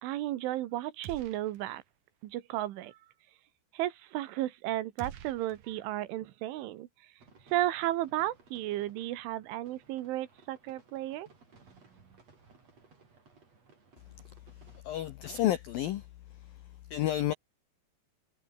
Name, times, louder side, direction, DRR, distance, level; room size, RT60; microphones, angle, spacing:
voice 1, 0.0-1.8 2.2-3.0 3.7-6.9 7.5-11.3, right 14 dB, 80° right, 3.7 m, -34 dB
sound 1, 1.0-1.9 2.2-2.3 5.0-6.3, right 10 dB, 55° right, 2.4 m, -48 dB
sound 2, 7.2-14.8, right 4 dB, 35° right, 6.1 m, -61 dB
voice 2, 14.8-16.1 16.9-17.3, left 13 dB, 90° left, 2.0 m, -30 dB
omnidirectional pair, 5.7 m